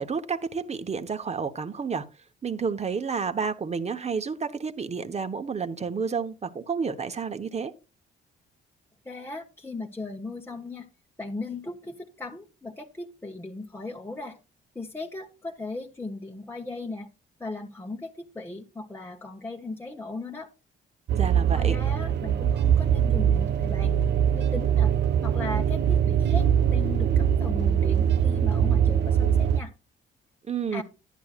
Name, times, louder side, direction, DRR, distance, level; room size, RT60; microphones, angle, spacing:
voice 1, 0.0-2.1 2.4-7.7 21.1-21.8 30.5-30.8, right 5 dB, 35° right, 1.1 m, -30 dB
voice 2, 9.0-10.9 11.2-14.4 14.7-17.1 17.4-20.5 21.5-24.0 24.3-24.9 25.2-29.7 30.7-30.8, left 2 dB, 10° left, 1.0 m, -37 dB
sound 1, 21.1-29.6, right 9 dB, 60° right, 0.6 m, -22 dB
11.0 x 10.0 x 2.4 m
cardioid pair, 90°, 20 cm